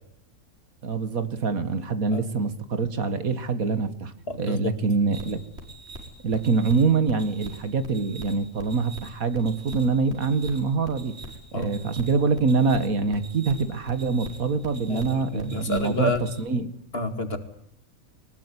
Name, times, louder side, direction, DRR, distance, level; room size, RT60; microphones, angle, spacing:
voice 1, 0.8-4.1 4.4-5.4 6.2-11.2 11.5-16.1 16.4-16.7, right 4 dB, 70° right, 11 dB, 2.2 m, -25 dB
voice 2, 4.3-4.7 11.5-11.7 14.9-16.2 16.9-17.4, left 2 dB, 45° left, 8 dB, 2.6 m, -29 dB
sound 1, 5.1-16.4, right 1 dB, 45° right, 5.3 m, -43 dB
23.0 x 20.0 x 9.9 m, 0.68 s
omnidirectional pair, 1.5 m